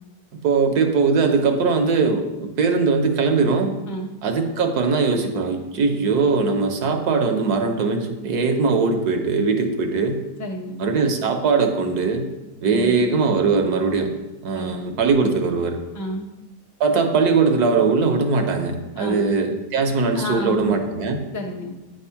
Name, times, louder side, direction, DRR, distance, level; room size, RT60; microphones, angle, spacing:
voice 1, 0.4-3.7 4.2-10.2 10.8-12.3 12.6-14.1 14.4-15.8 16.8-21.2, right 4 dB, 70° right, 5 dB, 1.3 m, -20 dB
voice 2, 10.4-10.8 12.7-13.0 14.5-14.8 15.9-16.3 18.9-19.3 20.1-20.8 21.3-21.7, left 1 dB, 20° left, -2 dB, 0.5 m, -30 dB
8.9 x 3.5 x 5.7 m, 1.0 s
omnidirectional pair, 1.8 m